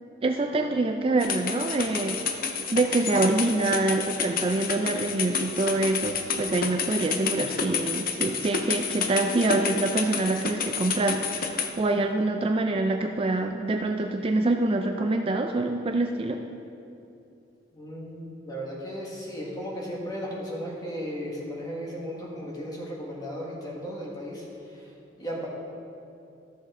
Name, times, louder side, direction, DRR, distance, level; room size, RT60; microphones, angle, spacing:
voice 1, 0.2-16.4, right 2 dB, 30° right, 4 dB, 0.3 m, -26 dB
sound 1, 1.2-11.7, left 6 dB, 50° left, 0.6 m, -30 dB
voice 2, 17.7-24.5 24.7-24.9 25.2-25.5, equal, 20° left, -3 dB, 1.6 m, -35 dB
13.0 x 6.4 x 3.7 m, 2.7 s
head